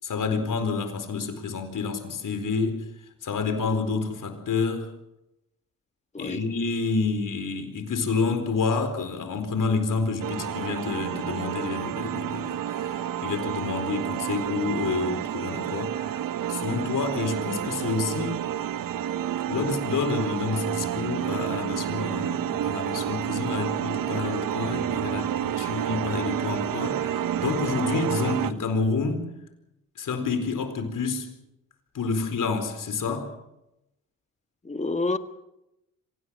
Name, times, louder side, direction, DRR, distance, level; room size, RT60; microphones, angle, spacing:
voice 1, 0.0-2.8 3.2-4.9 6.2-16.2 16.5-18.5 19.5-29.3 30.0-31.3 31.9-33.3, left 4 dB, 65° left, 4.5 m, -29 dB
sound 1, 10.2-28.5, right 10 dB, 70° right, 1.0 m, -30 dB
voice 2, 34.6-35.2, left 3 dB, 20° left, 1.7 m, -28 dB
25.5 x 18.0 x 6.4 m
cardioid pair, 75°, 34 cm